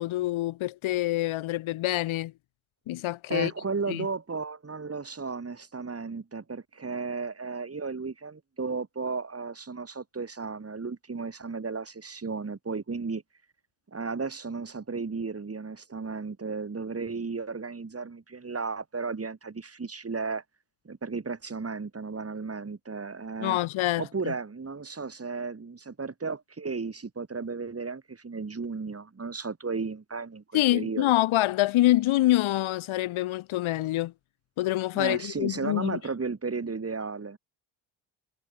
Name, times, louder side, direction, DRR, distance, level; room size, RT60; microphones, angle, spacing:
voice 1, 0.0-2.3 2.9-3.5 3.9-4.1 23.4-24.3 30.5-34.1 34.6-36.0, left 16 dB, 70° left, 5.2 m, -26 dB
voice 2, 3.3-13.2 13.9-20.4 20.9-23.6 24.0-31.2 34.9-37.4, right 4 dB, 30° right, 7.0 m, -34 dB
hypercardioid pair, 55°, 50 cm